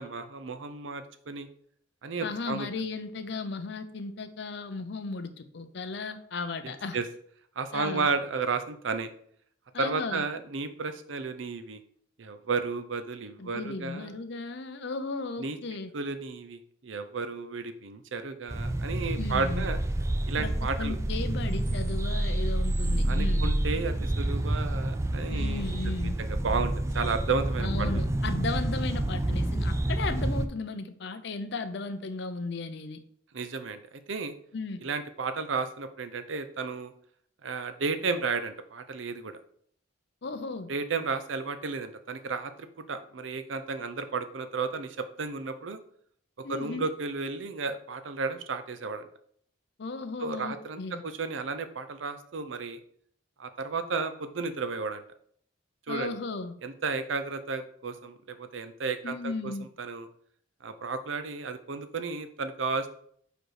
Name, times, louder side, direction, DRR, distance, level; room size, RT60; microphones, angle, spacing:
voice 1, 0.0-1.5 2.0-2.7 6.6-7.1 7.6-9.1 9.8-11.8 12.2-14.2 15.4-15.6 15.9-19.8 20.3-21.0 23.1-27.9 33.3-34.3 34.8-36.9 37.4-39.3 40.7-45.8 46.5-49.1 50.2-52.8 53.4-55.0 55.9-56.1 56.6-59.5 59.8-60.1 60.6-62.9, right 4 dB, 85° right, 9 dB, 0.6 m, -33 dB
voice 2, 2.2-7.0 7.7-8.1 9.7-10.2 13.4-15.9 19.2-19.6 20.4-20.5 20.8-23.5 25.3-26.2 27.6-33.0 34.5-34.8 40.2-40.7 46.4-46.9 49.8-51.0 55.9-56.5 59.0-59.7, left 3 dB, 65° left, 9 dB, 0.6 m, -35 dB
sound 1, 18.5-30.5, right 1 dB, 15° right, 0.3 m, -28 dB
5.0 x 4.5 x 4.8 m, 0.62 s
head